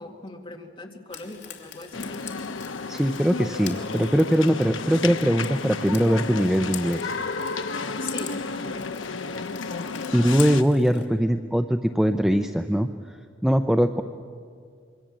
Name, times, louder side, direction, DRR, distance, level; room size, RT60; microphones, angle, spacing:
voice 1, 0.0-2.2 8.0-9.4, left 2 dB, 25° left, 2 dB, 2.2 m, -41 dB
Frying (food), 1.1-11.0, left 9 dB, 60° left, 2.7 m, -43 dB
sound 1, 1.9-10.6, left 4 dB, 80° left, 0.9 m, -32 dB
voice 2, 2.9-7.1 10.1-13.2 13.4-14.0, equal, 5° right, 7 dB, 0.6 m, -21 dB
27.0 x 23.0 x 7.6 m, 2.1 s
head